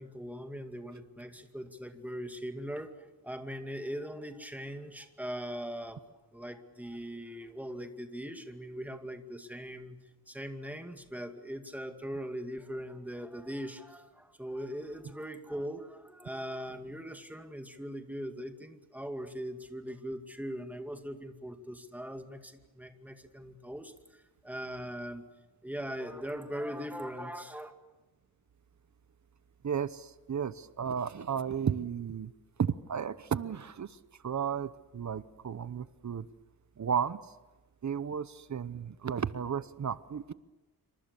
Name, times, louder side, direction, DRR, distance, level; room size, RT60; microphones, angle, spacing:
voice 1, 0.0-6.0 6.3-10.0 10.3-25.2 25.6-27.7, equal, 5° right, 5 dB, 2.3 m, -40 dB
voice 2, 29.6-32.3 32.6-33.9 34.2-36.2 36.8-37.2 37.8-40.3, right 7 dB, 50° right, 15 dB, 0.9 m, -33 dB
27.5 x 25.5 x 6.9 m, 1.1 s
wide cardioid pair, 125°, 36 cm